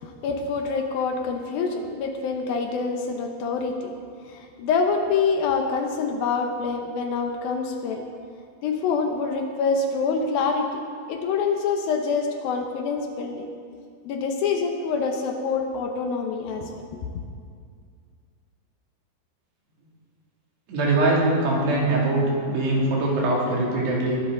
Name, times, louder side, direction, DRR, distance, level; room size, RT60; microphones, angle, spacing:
voice 1, 0.0-3.9 4.3-8.0 8.6-10.8 11.1-13.5 14.1-17.0, left 5 dB, 75° left, 3 dB, 2.5 m, -26 dB
voice 2, 20.7-24.2, right 2 dB, 80° right, -4 dB, 4.8 m, -22 dB
21.5 x 11.5 x 3.8 m, 2.2 s
omnidirectional pair, 4.8 m